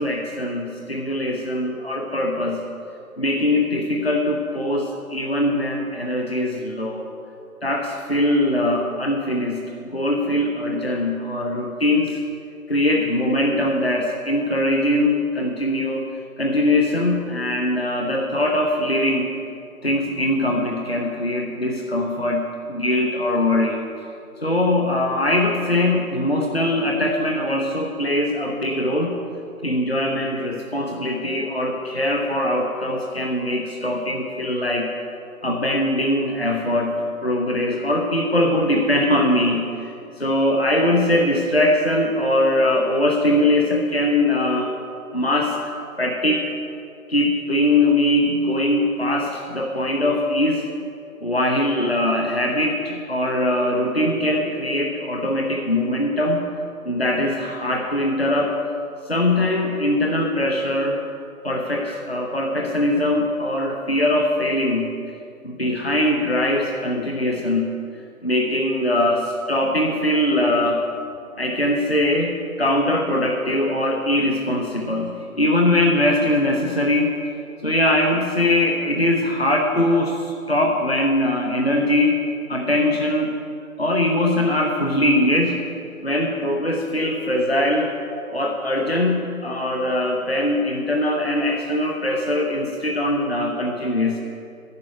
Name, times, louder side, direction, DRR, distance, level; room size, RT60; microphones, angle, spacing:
voice 1, 0.0-2.6 3.2-7.1 7.6-9.6 9.9-12.2 12.7-16.1 16.4-19.3 19.8-23.8 24.4-29.2 29.6-34.9 35.4-44.7 45.1-46.4 47.1-50.7 51.2-56.5 56.8-58.6 59.1-61.0 61.4-64.9 65.4-67.7 68.2-70.9 71.4-77.1 77.6-82.2 82.5-83.4 83.8-85.6 86.0-87.9 88.3-94.2, left 1 dB, 45° left, 1 dB, 0.8 m, -21 dB
10.5 x 6.1 x 8.9 m, 2.6 s
figure-of-eight pair, 180°, 45 cm